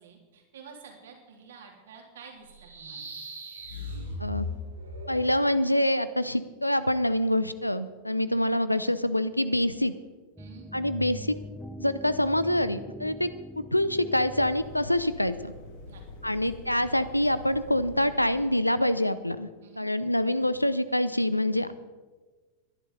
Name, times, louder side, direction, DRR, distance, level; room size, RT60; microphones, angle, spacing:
voice 1, 0.0-3.1 8.2-8.5 10.4-10.7 15.8-16.4 19.6-19.9, right 6 dB, 60° right, 1 dB, 3.2 m, -50 dB
sound 1, 2.5-5.3, left 2 dB, 80° right, 3.4 m, -37 dB
voice 2, 5.1-9.9 10.7-11.4 11.8-15.5 16.2-19.5 19.8-21.7, left 1 dB, 85° left, 14 dB, 0.6 m, -26 dB
sound 2, 10.4-15.4, equal, 5° right, 0.8 m, -43 dB
sound 3, 14.2-18.7, left 2 dB, 55° left, 6.1 m, -46 dB
21.5 x 11.0 x 4.1 m, 1.3 s
figure-of-eight pair, 90°, 0 cm